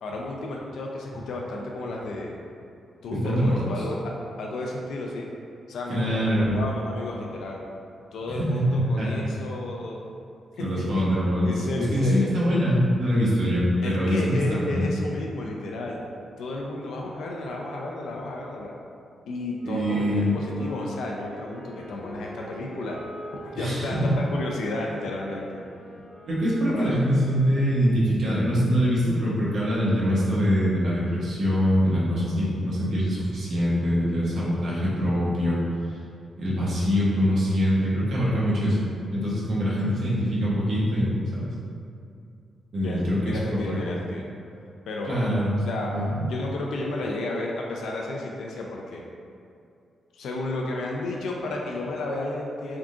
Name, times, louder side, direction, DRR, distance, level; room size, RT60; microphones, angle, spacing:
voice 1, 0.0-2.4 3.0-5.3 5.7-7.7 8.1-10.0 10.6-10.8 11.5-12.3 13.8-16.0 16.4-18.7 19.3-23.0 23.5-25.6 26.7-26.9 42.8-44.3 44.9-45.2 45.6-45.9 46.3-49.0 50.1-52.8, left 2 dB, 80° left, -1 dB, 0.4 m, -32 dB
voice 2, 3.1-3.7 5.9-6.6 8.3-9.2 10.6-11.5 11.8-14.8 19.6-20.4 23.5-24.1 26.3-35.6 36.4-38.8 39.1-41.5 42.7-43.8 45.1-45.5 45.9-46.2, equal, 50° right, -8 dB, 0.9 m, -24 dB
Wind instrument woodwind instrument, 19.5-27.9, equal, 85° right, 1.0 m, -45 dB
3.6 x 2.4 x 3.6 m, 2.5 s
wide cardioid pair, 155°, 0 cm